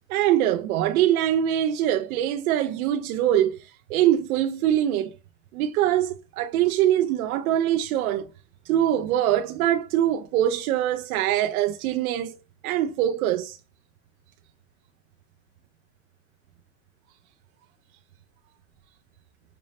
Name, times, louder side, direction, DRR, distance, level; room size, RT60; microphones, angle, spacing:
voice 1, 0.1-5.1 5.5-8.3 8.7-12.4 12.6-13.6, right 11 dB, 85° right, 0.6 m, -23 dB
5.3 x 2.0 x 2.6 m
supercardioid pair, 160°, 41 cm